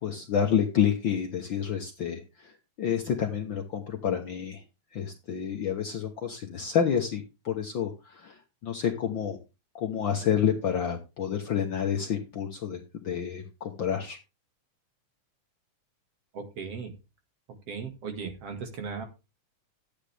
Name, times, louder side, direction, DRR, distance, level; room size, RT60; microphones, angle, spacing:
voice 1, 0.0-2.2 2.8-4.6 4.9-8.4 8.6-9.4 9.7-12.8 13.0-14.2, left 8 dB, 65° left, 3 dB, 1.2 m, -29 dB
voice 2, 16.3-16.9 17.7-19.1, right 5 dB, 55° right, 5 dB, 2.8 m, -37 dB
12.0 x 8.9 x 3.4 m, 0.28 s
omnidirectional pair, 3.5 m